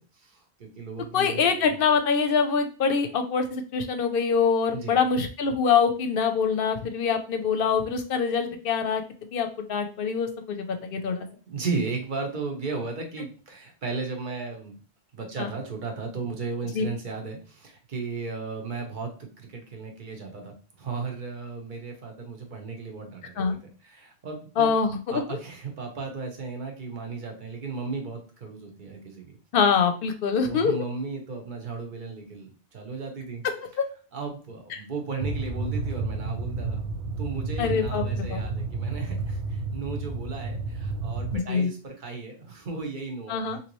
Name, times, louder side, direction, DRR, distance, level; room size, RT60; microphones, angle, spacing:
voice 1, 0.6-1.7 4.7-5.0 8.5-8.6 11.0-14.8 15.1-23.4 23.8-24.7 25.1-29.4 30.5-33.4 34.1-36.8 37.2-43.6, right 4 dB, 50° right, 3 dB, 0.9 m, -35 dB
voice 2, 1.1-11.3 15.4-15.5 16.7-16.9 23.4-23.6 24.6-25.2 29.5-30.7 33.4-33.9 34.7-34.8 37.6-38.4 41.3-41.7 43.3-43.6, left 6 dB, 65° left, 6 dB, 0.7 m, -24 dB
sound 1, 35.2-41.4, right 3 dB, 80° right, 0.9 m, -31 dB
3.0 x 2.7 x 3.0 m, 0.37 s
omnidirectional pair, 1.1 m